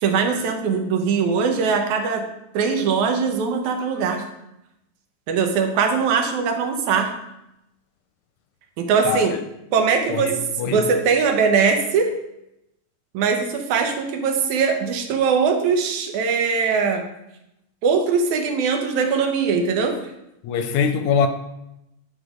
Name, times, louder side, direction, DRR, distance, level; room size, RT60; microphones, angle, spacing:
voice 1, 0.0-2.3 2.5-4.2 5.3-7.1 8.8-9.4 9.7-10.4 10.6-12.1 13.1-17.1 17.8-20.0, right 5 dB, 85° right, 2.3 m, -21 dB
voice 2, 10.1-10.9 20.4-21.3, left 6 dB, 90° left, 2.0 m, -22 dB
10.5 x 4.1 x 4.9 m
omnidirectional pair, 3.3 m